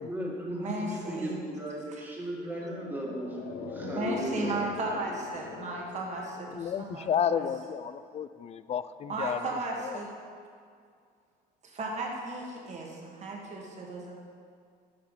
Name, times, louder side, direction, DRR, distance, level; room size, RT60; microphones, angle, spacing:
voice 1, 0.0-4.7, right 1 dB, 10° right, -3 dB, 1.9 m, -36 dB
voice 2, 0.6-1.4 3.8-7.4 9.1-10.1 11.6-14.2, right 2 dB, 45° right, -1 dB, 1.9 m, -35 dB
sound 1, 2.4-7.0 7.2-7.3, left 7 dB, 75° left, 0.7 m, -41 dB
voice 3, 6.5-10.0, left 8 dB, 40° left, 14 dB, 0.4 m, -32 dB
8.7 x 5.8 x 5.7 m, 2.2 s
cardioid pair, 110°, 17 cm